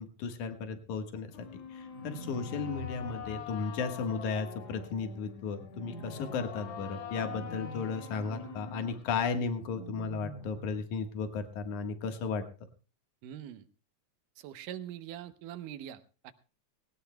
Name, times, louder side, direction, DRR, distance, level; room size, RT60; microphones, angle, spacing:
voice 1, 0.0-12.4, left 5 dB, 70° left, 6 dB, 2.9 m, -35 dB
sound 1, 1.3-9.3, left 6 dB, 55° left, 2.5 m, -45 dB
sound 2, 1.9-3.3 5.7-6.8 7.1-7.8 9.6-10.8, left 1 dB, 35° left, 3.0 m, -45 dB
voice 2, 13.2-13.7 14.4-16.3, right 11 dB, 90° right, 12 dB, 2.5 m, -43 dB
19.5 x 17.5 x 2.2 m, 0.35 s
omnidirectional pair, 3.6 m